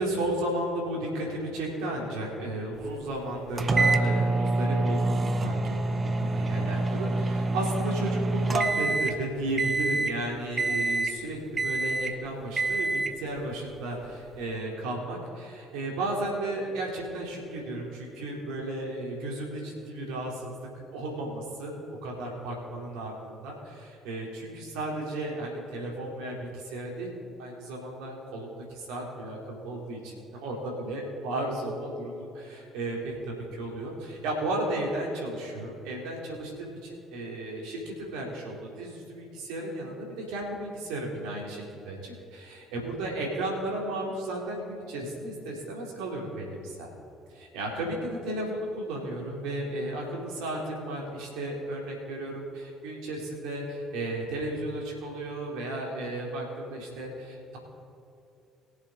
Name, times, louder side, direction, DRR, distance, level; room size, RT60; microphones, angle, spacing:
voice 1, 0.0-20.6 20.9-46.9 47.5-57.6, right 1 dB, 70° right, -1 dB, 3.2 m, -34 dB
sound 1, 3.6-9.2 9.6-10.2 10.6-11.2 11.6-12.2 12.6-13.2, right 2 dB, 30° right, 0.9 m, -26 dB
22.0 x 7.4 x 3.8 m, 2.6 s
hypercardioid pair, 50°, 0 cm